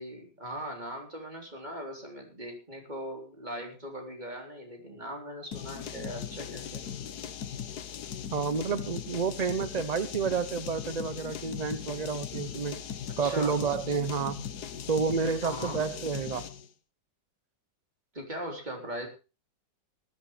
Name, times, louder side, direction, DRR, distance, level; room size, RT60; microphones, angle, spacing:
voice 1, 0.0-6.9 13.2-13.6 15.4-15.8 18.1-19.1, equal, 25° right, 2 dB, 3.8 m, -40 dB
sound 1, 5.5-16.7, left 8 dB, 65° left, 1.5 m, -39 dB
voice 2, 8.3-12.8 13.2-14.4 14.9-16.5, right 5 dB, 55° right, 14 dB, 0.4 m, -30 dB
19.0 x 13.5 x 3.2 m, 0.31 s
omnidirectional pair, 1.9 m